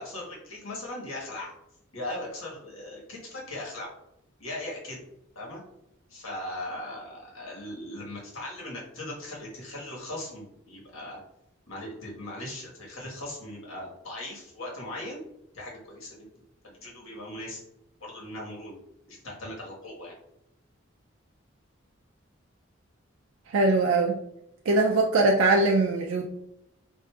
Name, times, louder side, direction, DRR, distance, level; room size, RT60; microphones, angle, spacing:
voice 1, 0.0-1.5 1.9-3.9 4.4-5.0 5.3-5.6 6.1-11.2 11.7-15.2 15.5-16.3 16.6-17.6 18.0-18.8 19.1-20.1, left 1 dB, 85° left, -3 dB, 1.4 m, -39 dB
voice 2, 23.5-24.2 24.7-26.3, right 2 dB, 80° right, 0 dB, 0.4 m, -22 dB
4.5 x 2.6 x 2.3 m, 0.82 s
head